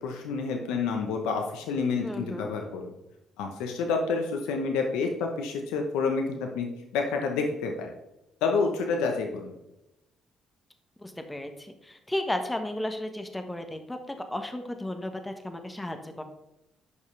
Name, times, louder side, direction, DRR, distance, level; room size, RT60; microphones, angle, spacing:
voice 1, 0.0-2.9 3.4-6.7 6.9-7.9 8.4-9.6, left 4 dB, 80° left, 3 dB, 0.9 m, -29 dB
voice 2, 2.0-2.5 11.0-16.2, left 1 dB, 10° left, 6 dB, 1.3 m, -34 dB
11.0 x 5.4 x 3.4 m, 0.91 s
supercardioid pair, 60°, 0 cm